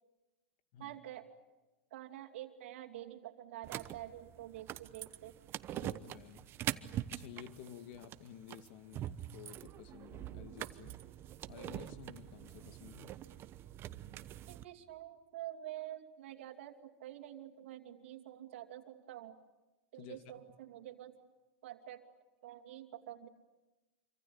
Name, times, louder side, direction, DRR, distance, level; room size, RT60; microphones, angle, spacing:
voice 1, 0.8-1.3 1.9-5.4 14.5-19.4 19.9-21.2 21.6-22.0 22.4-23.3, right 13 dB, 75° right, 3 dB, 2.7 m, -48 dB
sound 1, 3.6-14.6, right 12 dB, 35° right, 1.0 m, -44 dB
voice 2, 5.7-6.5 7.1-11.0 11.5-13.2 20.0-20.2, left 9 dB, 60° left, 10 dB, 2.1 m, -52 dB
26.5 x 25.0 x 8.7 m, 1.1 s
supercardioid pair, 120°, 7 cm